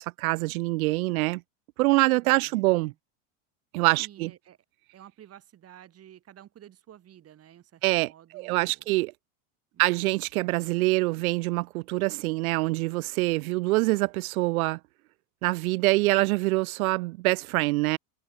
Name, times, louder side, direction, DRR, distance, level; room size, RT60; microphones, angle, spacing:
voice 1, 0.0-1.4 1.8-2.9 3.7-4.3 7.8-9.1 9.8-14.8 15.4-18.0, right 21 dB, 90° right, 0.7 m, -25 dB
voice 2, 2.2-3.0 4.0-4.6 4.9-8.9 9.7-10.0, right 11 dB, 35° right, 5.2 m, -52 dB
supercardioid pair, 130°, 41 cm